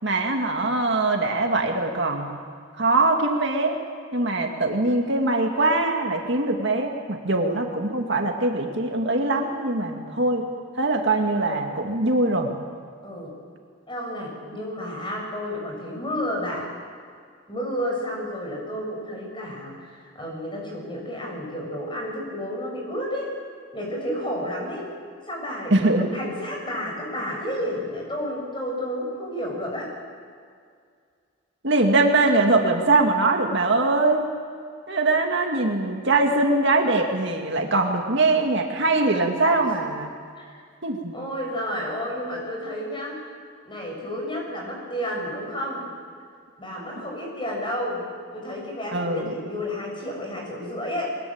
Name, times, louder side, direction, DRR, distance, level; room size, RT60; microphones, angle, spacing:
voice 1, 0.0-2.4 2.8-3.8 4.1-10.5 10.8-12.5 25.7-26.1 31.6-34.3 34.9-40.1 40.8-41.1 48.9-49.3, right 2 dB, 55° right, 2 dB, 2.3 m, -22 dB
voice 2, 13.0-13.3 13.9-16.7 17.5-23.3 23.7-24.9 25.3-29.9 39.5-39.6 40.3-40.6 41.1-43.2 43.6-45.9 46.6-48.0 48.3-51.1, equal, 20° left, -1 dB, 6.8 m, -31 dB
23.5 x 21.5 x 8.9 m, 2.1 s
head